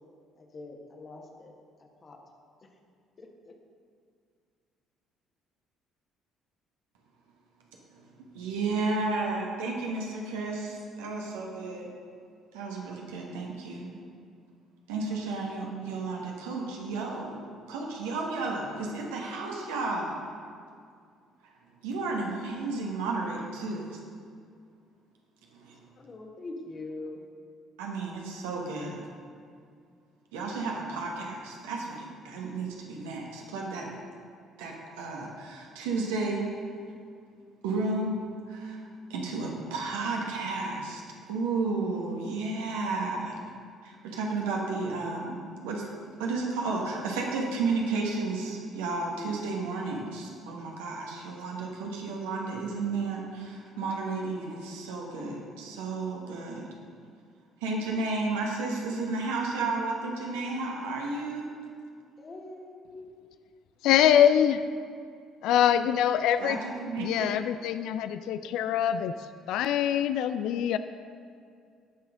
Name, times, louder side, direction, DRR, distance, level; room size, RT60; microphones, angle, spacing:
voice 1, 0.3-1.5 1.8-2.2 3.2-3.5 26.0-27.2 62.2-63.1, left 2 dB, 35° left, 2 dB, 1.5 m, -43 dB
voice 2, 8.3-11.9 12.5-13.9 14.9-17.4 17.7-20.2 21.8-24.0 25.5-25.9 27.8-29.0 30.3-33.9 34.6-36.5 37.6-38.2 38.5-38.8 39.1-41.0 41.3-43.4 43.8-45.4 45.6-45.9 46.2-56.7 57.6-61.5 66.4-67.4, right 3 dB, 70° right, -1 dB, 1.4 m, -32 dB
voice 3, 63.8-64.6 65.4-66.6 67.0-69.1 69.5-70.8, left 10 dB, 60° left, 11 dB, 0.3 m, -24 dB
16.5 x 6.1 x 3.7 m, 2.3 s
figure-of-eight pair, 50°, 0 cm